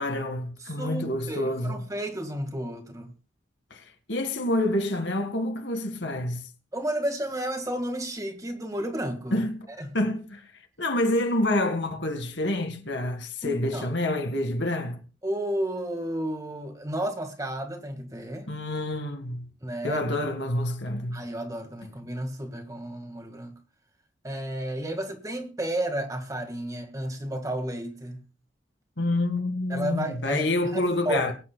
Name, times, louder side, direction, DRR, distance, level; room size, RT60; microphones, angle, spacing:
voice 1, 0.0-1.8 3.7-6.4 9.3-9.6 9.9-10.4 10.8-15.0 18.5-19.5 19.8-21.2 29.0-31.3, left 1 dB, 65° left, 1.9 m, -27 dB
voice 2, 0.7-3.1 6.7-9.4 9.7-9.9 13.4-13.9 15.2-18.5 19.6-20.0 21.1-23.5 24.2-28.2 29.7-31.2, right 1 dB, 15° right, 1.8 m, -32 dB
23.5 x 9.4 x 2.3 m
head